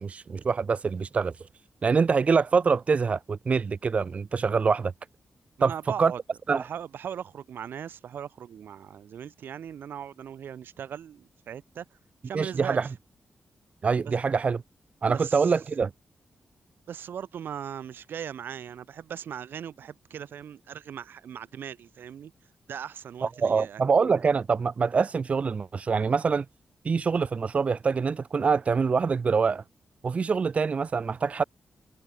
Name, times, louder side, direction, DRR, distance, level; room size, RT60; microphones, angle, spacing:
voice 1, 0.0-1.3 1.8-4.9 5.6-5.7 6.0-6.1 6.5-6.6 12.3-12.9 13.8-14.6 15.0-15.9 23.2-26.4 26.8-29.6 30.0-31.4, right 5 dB, 40° right, 1.5 m, -25 dB
voice 2, 5.6-6.2 6.6-11.8 12.2-12.9 14.0-14.2 15.1-15.5 16.9-22.3 22.7-23.8, right 8 dB, 85° right, 2.9 m, -39 dB
open air
wide cardioid pair, 155°, 3 cm